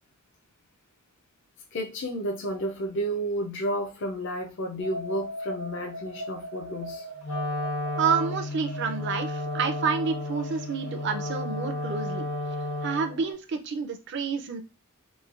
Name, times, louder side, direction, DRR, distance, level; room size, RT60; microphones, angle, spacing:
voice 1, 1.7-7.0, equal, 55° left, 0.4 m, -31 dB
sound 1, 4.8-13.3, right 2 dB, 85° right, 1.1 m, -41 dB
Wind instrument woodwind instrument, 7.2-13.2, left 2 dB, 80° left, 1.0 m, -32 dB
voice 2, 8.0-12.3 12.8-14.6, right 6 dB, 55° right, 0.4 m, -29 dB
3.1 x 2.2 x 2.4 m
head